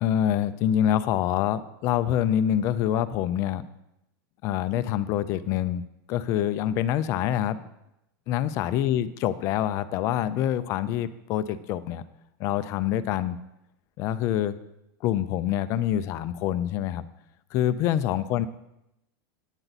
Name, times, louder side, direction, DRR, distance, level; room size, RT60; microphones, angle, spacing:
voice 1, 0.0-3.6 4.4-5.8 6.1-7.6 8.3-12.0 12.4-13.4 14.0-14.5 15.0-17.1 17.5-18.5, left 11 dB, 25° left, 13 dB, 0.3 m, -26 dB
9.0 x 8.9 x 4.0 m, 0.86 s
supercardioid pair, 175°, 12 cm